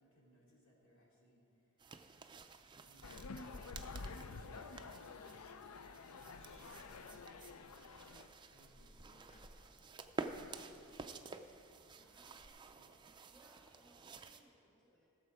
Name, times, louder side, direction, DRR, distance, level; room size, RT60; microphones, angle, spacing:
voice 1, 0.0-1.4 2.7-5.8 6.2-10.6 12.8-13.0, equal, 60° left, -4 dB, 2.6 m, -69 dB
sound 1, 1.8-14.4, right 3 dB, 20° right, 0.4 m, -51 dB
sound 2, 3.0-8.3, left 4 dB, 80° left, 0.5 m, -49 dB
Purr / Meow, 6.4-12.5, equal, 30° left, 0.8 m, -65 dB
voice 2, 11.9-12.7 13.3-15.1, equal, 5° left, -4 dB, 1.6 m, -68 dB
15.5 x 7.0 x 4.9 m, 2.8 s
head